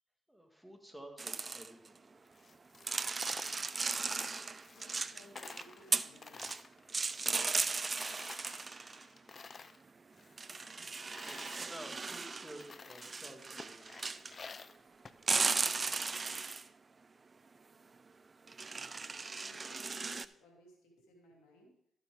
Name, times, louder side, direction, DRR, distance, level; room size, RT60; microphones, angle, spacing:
voice 1, 0.3-2.2 11.2-13.9, right 1 dB, ahead, 3 dB, 1.8 m, -52 dB
sound 1, 1.2-1.9 2.8-5.6 5.9-6.6 6.9-9.1 10.4-12.7 13.0-14.4 15.2-16.7 18.5-20.2, right 4 dB, 35° right, 0.4 m, -36 dB
Coin (dropping), 2.3-5.1 5.3-7.7 8.0-9.8 10.1-11.6 12.2-12.3 12.6-13.2 13.6-16.0, left 4 dB, 45° left, 0.5 m, -51 dB
voice 2, 4.7-6.7 19.4-21.7, left 1 dB, 90° left, 0 dB, 2.4 m, -60 dB
12.0 x 7.5 x 3.5 m, 0.74 s
supercardioid pair, 55°, 0 cm